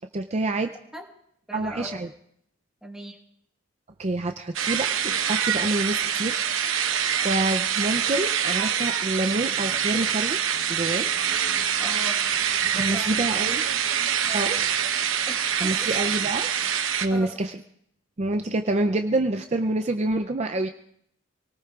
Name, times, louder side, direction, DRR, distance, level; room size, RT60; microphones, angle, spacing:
voice 1, 0.1-0.7 1.5-2.1 4.0-6.4 6.8-6.9 7.2-10.4 10.7-11.1 12.6-13.6 14.3-14.7 15.5-16.5 17.0-17.6 18.2-20.7, right 2 dB, 35° right, 6 dB, 0.5 m, -27 dB
voice 2, 1.5-2.0 2.8-3.2 11.8-12.2 12.7-13.6 14.3-14.6 15.3-16.1 17.1-17.4, equal, 5° right, 0 dB, 1.5 m, -39 dB
sound 1, 4.5-17.1, right 8 dB, 80° right, 0.9 m, -25 dB
28.5 x 18.5 x 2.4 m, 0.70 s
head